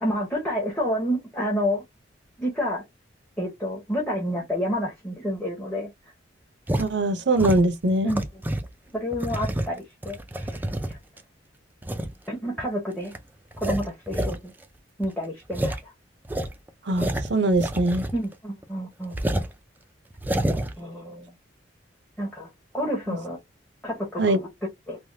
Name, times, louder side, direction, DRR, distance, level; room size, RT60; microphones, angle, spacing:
voice 1, 0.0-1.8 2.4-2.8 3.4-5.9 8.0-8.2 8.9-11.0 12.3-13.1 13.6-14.5 15.0-15.9 18.1-19.2 20.8-21.3 22.2-23.4 23.8-24.5 24.9-25.0, equal, 5° left, 0.9 m, -29 dB
sound 1, 6.7-6.9 7.4-8.7 9.1-11.2 11.8-12.1 12.6-12.7 13.1-13.2 13.5-14.4 14.6-14.7 15.0-15.1 15.5-15.8 16.3-18.3 18.6-18.7 19.1-19.5 20.1-20.7, right 1 dB, 10° right, 0.4 m, -28 dB
voice 2, 6.8-8.1 16.9-18.1 23.1-23.2 24.2-24.4, right 2 dB, 65° right, 0.7 m, -22 dB
3.3 x 2.2 x 2.7 m
head